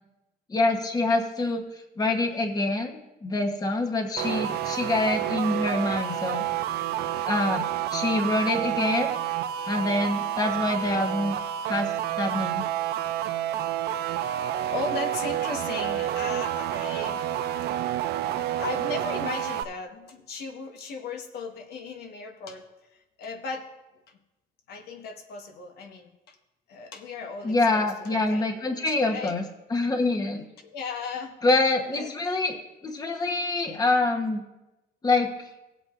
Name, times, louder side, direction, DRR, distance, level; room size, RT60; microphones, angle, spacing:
voice 1, 0.5-1.6 2.0-3.0 3.2-6.4 7.2-9.1 9.7-11.4 11.7-12.6 27.4-29.4 29.7-30.5 31.4-32.6 32.8-34.4 35.0-35.3, left 2 dB, 20° left, 4 dB, 1.1 m, -25 dB
sound 1, 4.2-19.6, right 11 dB, 70° right, 0.5 m, -29 dB
voice 2, 14.7-17.2 18.6-23.7 24.7-26.4 26.7-29.3 30.6-31.3 31.9-32.2, left 4 dB, 70° left, 4 dB, 1.3 m, -37 dB
18.0 x 8.1 x 2.6 m, 0.99 s
cardioid pair, 110°, 17 cm